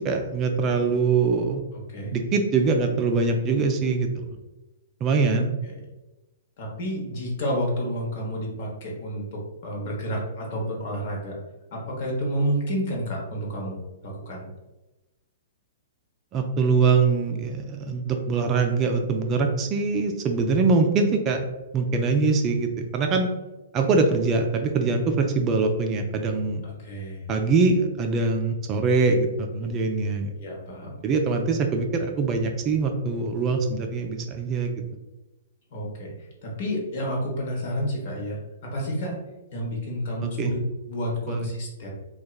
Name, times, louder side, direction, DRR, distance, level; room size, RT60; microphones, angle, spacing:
voice 1, 0.0-1.6 2.1-4.3 5.0-5.5 16.3-21.4 21.7-23.3 23.7-26.6 27.3-30.3 31.0-34.7 40.2-40.5 41.3-41.5, right 4 dB, 30° right, 4 dB, 0.3 m, -23 dB
voice 2, 1.7-2.2 5.6-5.7 6.6-11.4 11.7-14.5 26.6-27.3 30.3-31.0 35.7-39.2 39.5-40.6 40.9-41.9, equal, 55° left, -2 dB, 0.9 m, -30 dB
2.7 x 2.2 x 2.3 m, 1.0 s
hypercardioid pair, 125°, 0 cm